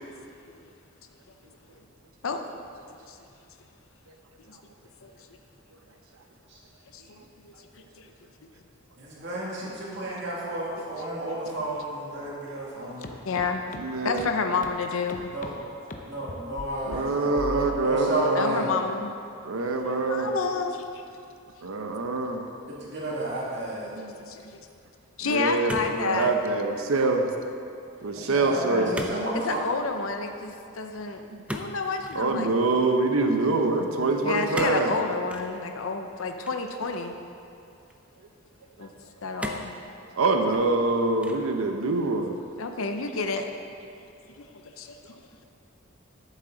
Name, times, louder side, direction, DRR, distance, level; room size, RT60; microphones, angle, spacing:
voice 1, 6.9-8.1 12.6-13.7 14.0-15.3 18.3-19.1 19.8-21.0 24.0-24.5 25.2-26.3 29.3-32.5 34.2-37.2 38.8-38.9 39.2-39.7 42.6-43.5 44.5-45.0, left 4 dB, 75° left, 5 dB, 0.6 m, -30 dB
voice 2, 9.0-13.2 15.3-15.6 16.0-18.7 22.7-24.0 28.1-29.7, right 1 dB, 55° right, -5 dB, 2.2 m, -32 dB
sound 1, 13.0-13.1 13.4-13.5 13.7-13.8 14.2-14.3 14.6-14.7 15.1-15.5 15.9-16.0 16.3-16.7 16.9-17.0 17.4-17.9, left 1 dB, 40° left, 0.7 m, -36 dB
voice 3, 13.8-14.3 16.8-18.7 19.4-20.3 21.6-22.4 23.9-24.2 25.3-27.2 28.0-29.1 32.1-35.0 38.8-38.9 40.2-42.4, right 3 dB, 85° right, 4 dB, 0.7 m, -25 dB
sound 2, 25.7-26.4 26.8-27.2 28.9-29.2 29.5-29.7 31.5-32.3 34.5-34.9 35.3-35.5 36.4-37.2 37.9-38.0 39.4-39.8 40.4-40.9 41.2-41.6, equal, 5° right, 0.4 m, -37 dB
12.5 x 7.3 x 3.9 m, 2.5 s
head